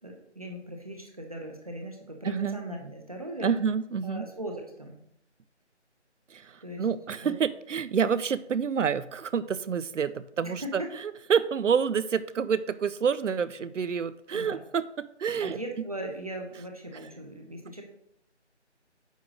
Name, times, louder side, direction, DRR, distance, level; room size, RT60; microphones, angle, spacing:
voice 1, 0.0-3.5 4.0-5.0 6.6-6.9 7.2-7.3 10.4-10.9 14.3-14.6 15.4-17.8, right 1 dB, 30° right, 2 dB, 1.0 m, -39 dB
voice 2, 2.2-2.6 3.4-4.3 6.3-10.8 11.3-15.6, right 6 dB, 90° right, 15 dB, 0.6 m, -28 dB
9.2 x 3.8 x 6.3 m, 0.75 s
figure-of-eight pair, 175°, 35 cm